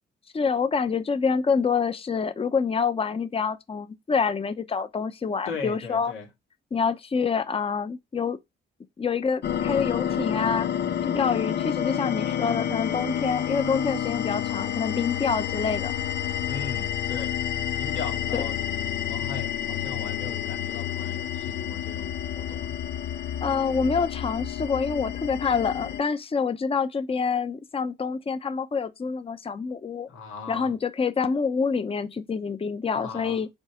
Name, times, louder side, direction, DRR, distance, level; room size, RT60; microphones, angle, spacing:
voice 1, 0.3-6.1 6.7-8.4 9.0-10.7 11.0-15.9 18.3-18.4 23.4-30.1 30.5-33.5, left 5 dB, 30° left, 0.9 m, -27 dB
voice 2, 5.4-6.3 16.5-17.3 17.8-18.6 19.1-22.8 23.5-23.6 30.1-30.7 32.8-33.4, left 5 dB, 85° left, 2.5 m, -38 dB
sound 1, 9.4-26.0, left 10 dB, 60° left, 0.7 m, -29 dB
5.4 x 4.2 x 4.9 m
cardioid pair, 90°, 20 cm